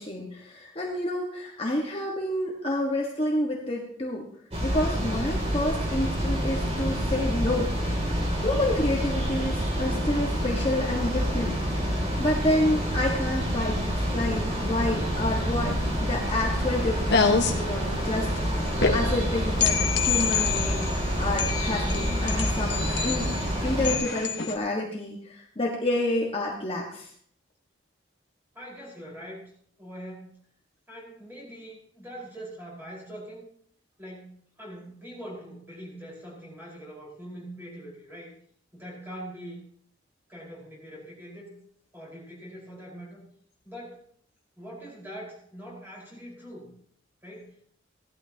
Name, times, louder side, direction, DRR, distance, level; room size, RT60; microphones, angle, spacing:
voice 1, 0.0-4.2 4.6-7.7 8.1-11.6 12.2-13.8 14.1-15.7 16.0-18.3 18.9-23.3 23.6-27.1, left 1 dB, 30° left, -2 dB, 1.5 m, -29 dB
sound 1, 4.5-24.0, equal, 30° right, 2.8 m, -28 dB
sound 2, 15.8-24.6, left 5 dB, 60° left, 1.3 m, -28 dB
voice 2, 28.5-29.5 29.8-30.3 30.9-33.5 34.0-34.3 34.6-38.3 38.7-39.6 40.3-41.5 41.9-43.3 43.6-44.0 44.6-46.7 47.2-47.6, equal, 10° right, -4 dB, 4.8 m, -42 dB
16.5 x 12.0 x 2.9 m, 0.62 s
head